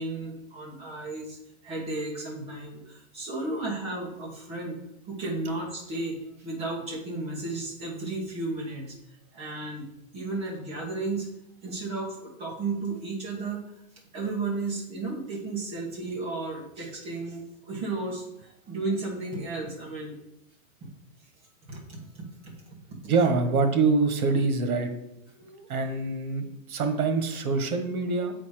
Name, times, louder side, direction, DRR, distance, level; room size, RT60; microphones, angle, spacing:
voice 1, 0.0-4.8 5.0-8.9 9.3-9.9 10.1-11.3 11.6-13.6 14.1-20.1 20.8-20.9 21.7-22.3 25.4-25.9, right 3 dB, 15° right, -3 dB, 1.3 m, -34 dB
voice 2, 23.1-24.9 25.7-28.3, right 4 dB, 85° right, 6 dB, 1.4 m, -25 dB
7.8 x 4.2 x 4.9 m, 0.81 s
supercardioid pair, 170°, 42 cm